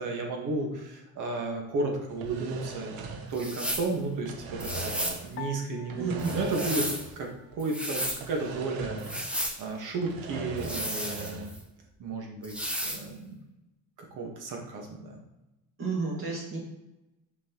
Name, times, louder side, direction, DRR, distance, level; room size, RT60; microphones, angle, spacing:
voice 1, 0.0-3.0 3.3-4.9 5.2-6.8 7.2-11.5 12.0-13.3 14.1-15.2, right 3 dB, 60° right, 1 dB, 1.6 m, -33 dB
sound 1, 2.1-3.9 4.1-5.4 5.9-7.3 7.5-7.6 8.2-9.5 9.8-11.6, right 4 dB, 85° right, 1.0 m, -40 dB
sound 2, 3.3-3.9 4.6-5.2 6.2-7.1 7.6-8.2 9.0-9.6 10.6-11.6 12.4-13.0, equal, 5° right, 0.7 m, -33 dB
Piano, 5.4-7.9, left 4 dB, 35° left, 0.5 m, -47 dB
voice 2, 6.0-6.3 15.8-16.6, right 4 dB, 35° right, -3 dB, 2.1 m, -31 dB
6.2 x 5.6 x 3.0 m, 0.97 s
cardioid pair, 160°, 35 cm